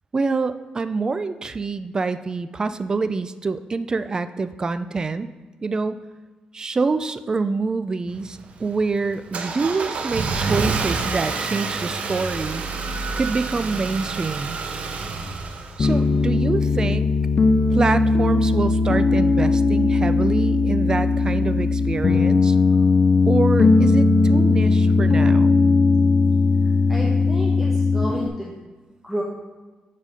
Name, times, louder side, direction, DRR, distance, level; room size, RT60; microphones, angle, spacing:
voice 1, 0.1-5.3 5.6-6.0 6.5-12.6 13.2-14.6 15.8-17.1 17.7-22.6 23.3-25.6, right 4 dB, 30° right, 11 dB, 0.3 m, -26 dB
Car / Engine starting, 8.1-16.3, right 4 dB, 60° right, 0.7 m, -28 dB
Piano, 15.8-28.3, left 3 dB, 40° left, 0.4 m, -18 dB
voice 2, 26.6-28.6 29.0-29.2, equal, 5° right, -4 dB, 1.0 m, -31 dB
7.3 x 4.1 x 5.1 m, 1.3 s
cardioid pair, 105°, 3 cm